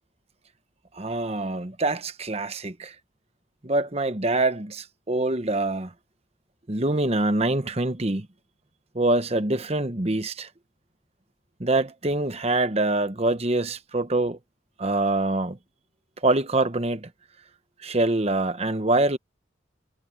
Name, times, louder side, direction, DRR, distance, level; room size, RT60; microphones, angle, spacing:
voice 1, 1.0-2.9 3.6-5.9 6.7-8.3 8.9-10.5 11.6-14.4 14.8-15.6 16.2-17.1 17.8-19.2, right 2 dB, 30° right, 1.0 m, -25 dB
head